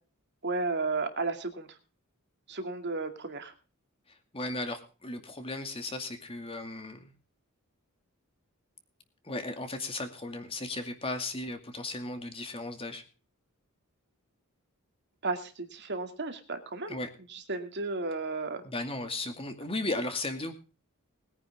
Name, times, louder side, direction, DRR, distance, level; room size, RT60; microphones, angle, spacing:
voice 1, 0.4-1.8 2.5-3.5 15.2-17.0 17.3-18.6, right 3 dB, 55° right, 6 dB, 2.4 m, -33 dB
voice 2, 4.1-7.1 9.2-13.0 16.9-17.1 18.6-20.5, left 2 dB, 25° left, 6 dB, 2.4 m, -36 dB
21.0 x 9.9 x 3.6 m, 0.35 s
head